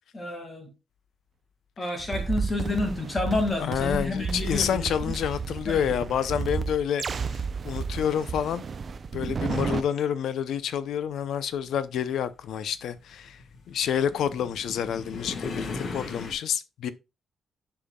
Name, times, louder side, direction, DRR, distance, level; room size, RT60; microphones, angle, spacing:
voice 1, 0.1-0.7 1.8-5.1 5.7-5.8, left 2 dB, 25° left, 2.0 m, -30 dB
sound 1, 2.0-9.8, right 5 dB, 35° right, 0.5 m, -32 dB
voice 2, 3.6-7.0 7.3-8.6 9.1-13.4 13.7-16.9, left 9 dB, 75° left, 0.6 m, -28 dB
sound 2, 9.1-9.2 10.2-16.3, left 4 dB, 50° left, 1.3 m, -39 dB
10.0 x 5.7 x 2.3 m
wide cardioid pair, 155°, 0 cm